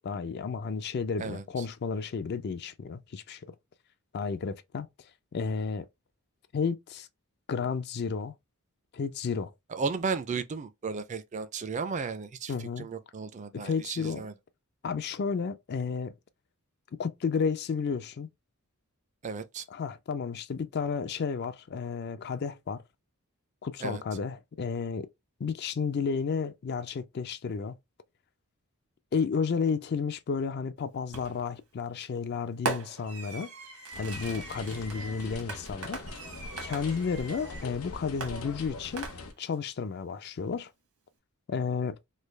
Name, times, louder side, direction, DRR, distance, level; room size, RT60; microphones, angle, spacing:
voice 1, 0.0-3.4 4.1-4.9 5.3-5.9 6.5-7.1 7.5-8.3 8.9-9.5 12.5-12.9 13.5-14.3 14.8-16.1 17.0-18.3 19.7-22.8 23.6-25.1 25.4-27.8 29.1-33.5 34.0-36.0 36.6-39.1 39.4-40.7 41.5-42.0, left 5 dB, 45° left, 0.4 m, -32 dB
voice 2, 1.2-1.6 9.7-14.3 19.2-19.6 23.8-24.0, right 5 dB, 30° right, 0.4 m, -34 dB
Fireworks, 31.1-31.5 32.7-37.7 38.2-39.5, right 4 dB, 85° right, 1.2 m, -39 dB
sound 1, 33.9-39.3, left 2 dB, 75° left, 0.8 m, -42 dB
3.3 x 2.2 x 3.2 m
head